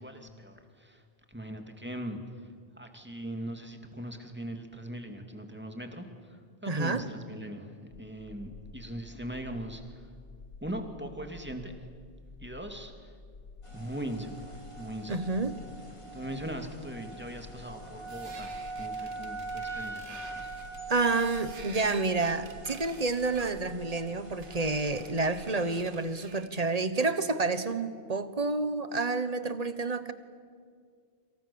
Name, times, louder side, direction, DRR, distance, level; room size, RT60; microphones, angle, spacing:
voice 1, 0.0-10.1 10.6-11.8 12.4-13.2 13.7-15.3 16.1-20.5, right 1 dB, 10° right, 5 dB, 2.5 m, -40 dB
voice 2, 6.7-7.0 15.1-15.5 20.9-30.1, right 3 dB, 35° right, 12 dB, 1.2 m, -29 dB
sound 1, 7.9-25.5, left 4 dB, 65° left, 1.5 m, -51 dB
sound 2, 13.6-26.0, right 3 dB, 25° left, 3.3 m, -43 dB
sound 3, 18.1-26.6, right 4 dB, 90° right, 1.9 m, -51 dB
28.0 x 26.5 x 7.1 m, 2.1 s
omnidirectional pair, 1.2 m